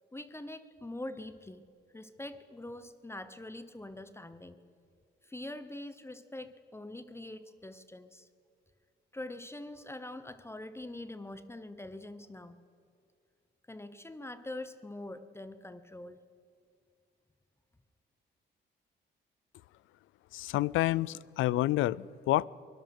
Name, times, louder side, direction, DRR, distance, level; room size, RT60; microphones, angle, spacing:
voice 1, 0.1-1.7 1.9-4.6 5.2-8.3 9.1-12.6 13.7-16.2, left 1 dB, 10° left, 12 dB, 1.0 m, -44 dB
voice 2, 20.3-22.5, left 16 dB, 85° left, 24 dB, 0.5 m, -29 dB
23.0 x 18.0 x 6.6 m, 2.4 s
cardioid pair, 90°, 20 cm